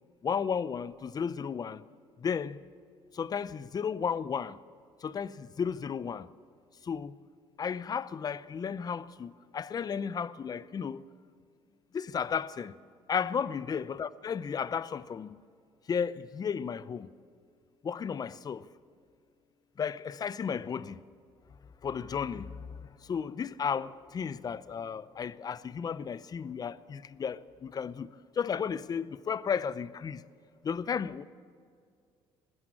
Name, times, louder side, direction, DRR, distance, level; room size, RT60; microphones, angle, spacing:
voice 1, 0.2-1.8 2.2-2.6 3.1-4.6 5.0-6.3 6.8-7.2 7.6-11.0 11.9-12.7 13.1-15.4 15.9-17.1 17.8-18.7 19.8-21.0 21.8-28.1 28.3-30.2 30.6-31.2, left 7 dB, 35° left, 0.7 m, -34 dB
20.5 x 15.5 x 8.6 m
supercardioid pair, 90°, 11 cm